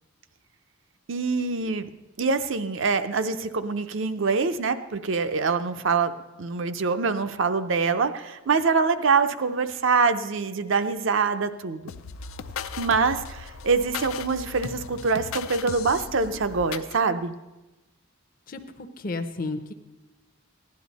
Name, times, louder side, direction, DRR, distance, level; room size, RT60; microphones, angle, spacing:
voice 1, 1.1-1.9 2.2-6.1 6.4-11.9 12.8-17.3, right 4 dB, 65° right, 10 dB, 0.6 m, -24 dB
sound 1, 11.9-17.0, left 6 dB, 80° left, 0.5 m, -37 dB
voice 2, 18.5-19.7, left 3 dB, 40° left, 7 dB, 0.7 m, -33 dB
16.0 x 10.5 x 4.1 m, 1.1 s
head